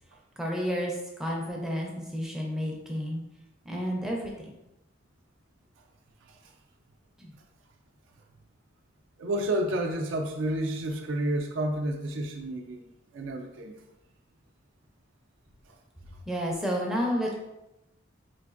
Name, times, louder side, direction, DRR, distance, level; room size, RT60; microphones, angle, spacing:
voice 1, 0.4-3.2 3.6-4.5 7.2-7.3 16.3-17.3, equal, ahead, -2 dB, 0.4 m, -31 dB
voice 2, 9.2-12.9 13.1-13.7, right 1 dB, 75° right, 3 dB, 0.4 m, -30 dB
3.9 x 2.5 x 2.4 m, 0.94 s
head